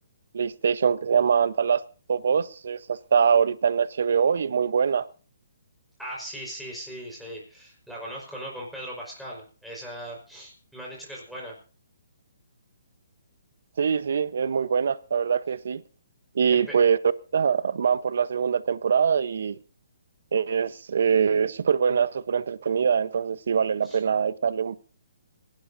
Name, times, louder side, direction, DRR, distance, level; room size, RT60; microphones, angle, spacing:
voice 1, 0.3-1.8 2.1-5.0 13.8-15.8 16.3-17.0 17.3-19.6 20.3-24.8, right 6 dB, 65° right, 1.0 m, -23 dB
voice 2, 6.0-11.6 16.5-16.8 23.8-24.0, equal, ahead, 4.9 m, -39 dB
26.5 x 12.0 x 2.7 m
hypercardioid pair, 165°, 0 cm